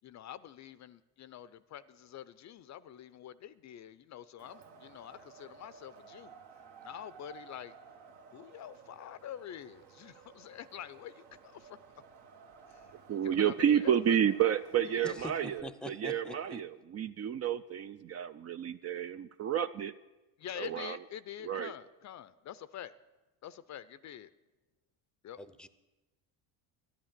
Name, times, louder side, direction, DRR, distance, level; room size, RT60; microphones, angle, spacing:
voice 1, 0.0-6.4 6.8-7.8 8.3-11.8 12.7-12.9 13.2-14.2 14.9-15.3 20.4-22.9 23.4-24.3 25.2-25.4, left 10 dB, 40° left, 16 dB, 0.5 m, -46 dB
Wind, 4.4-15.6, right 6 dB, 70° right, 1.7 m, -55 dB
voice 2, 13.1-19.9 20.6-21.0 21.4-21.7, right 9 dB, 35° right, 12 dB, 0.4 m, -30 dB
voice 3, 15.0-16.7 25.4-25.7, equal, ahead, 13 dB, 0.6 m, -44 dB
11.5 x 10.5 x 7.4 m, 1.1 s
supercardioid pair, 95°, 43 cm